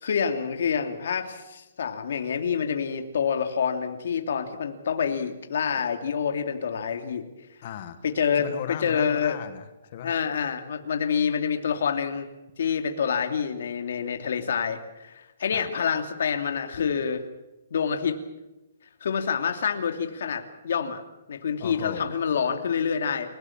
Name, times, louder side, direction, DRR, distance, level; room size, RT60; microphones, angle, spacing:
voice 1, 0.0-7.2 8.0-9.4 10.0-12.3 12.6-17.2 17.7-18.2 19.0-21.0 21.3-23.4, left 7 dB, 55° left, 5 dB, 2.8 m, -27 dB
voice 2, 7.6-8.0 8.3-10.1 15.5-15.7 21.6-22.1, left 10 dB, 30° left, 10 dB, 1.6 m, -36 dB
29.5 x 18.0 x 7.4 m, 1.0 s
hypercardioid pair, 180°, 0 cm